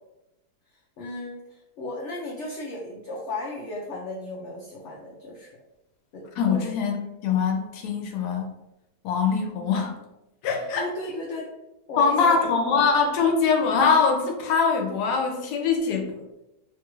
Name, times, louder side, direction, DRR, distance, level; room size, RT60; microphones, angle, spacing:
voice 1, 0.7-5.5 6.1-6.7 10.5-11.5 11.9-12.4 12.7-12.8, left 2 dB, 65° left, -2 dB, 0.7 m, -35 dB
voice 2, 6.4-8.6 9.0-10.0 10.4-10.9 12.0-16.2, left 5 dB, 90° left, 2 dB, 1.2 m, -23 dB
3.1 x 2.3 x 3.0 m, 0.93 s
omnidirectional pair, 1.7 m